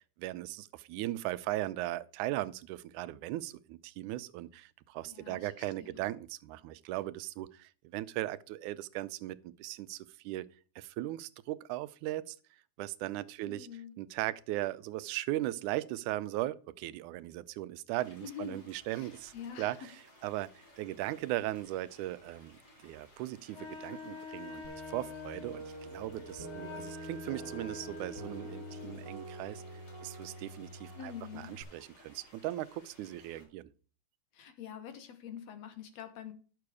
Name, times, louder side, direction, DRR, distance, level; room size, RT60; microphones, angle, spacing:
voice 1, 0.2-10.5 10.8-12.4 12.8-13.7 14.0-19.8 20.2-20.5 20.8-29.6 30.0-33.7, right 16 dB, 85° right, 2.0 m, -38 dB
voice 2, 5.0-5.9 13.4-14.0 18.2-19.9 31.0-31.5 34.3-36.3, left 9 dB, 65° left, 2.1 m, -46 dB
sound 1, 18.0-33.4, left 1 dB, 30° left, 4.2 m, -60 dB
Wind instrument woodwind instrument, 23.5-29.1, left 5 dB, 80° left, 3.6 m, -46 dB
sound 2, 24.6-31.6, right 2 dB, 25° right, 0.6 m, -47 dB
10.5 x 6.8 x 4.8 m
omnidirectional pair, 3.5 m